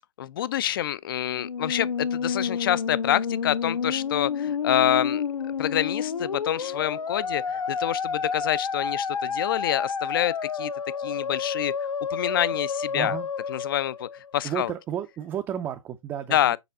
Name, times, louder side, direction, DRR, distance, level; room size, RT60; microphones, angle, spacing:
voice 1, 0.2-10.7 11.0-11.7 12.1-13.2 13.5-14.7 16.3-16.6, left 11 dB, 40° left, 0.5 m, -27 dB
Musical instrument, 1.3-14.6, left 6 dB, 80° left, 1.1 m, -30 dB
voice 2, 12.9-13.3 14.4-16.6, right 9 dB, 10° right, 0.4 m, -32 dB
6.9 x 4.6 x 3.5 m
hypercardioid pair, 145°, 17 cm